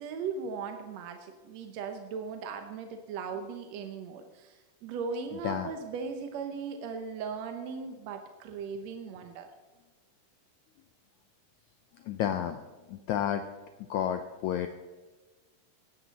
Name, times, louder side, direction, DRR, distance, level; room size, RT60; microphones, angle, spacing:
voice 1, 0.0-9.5, right 5 dB, 70° right, 6 dB, 1.7 m, -38 dB
voice 2, 12.0-12.6 12.9-13.4 13.9-14.7, left 10 dB, 80° left, 8 dB, 1.7 m, -30 dB
17.0 x 12.5 x 4.1 m, 1.3 s
omnidirectional pair, 4.0 m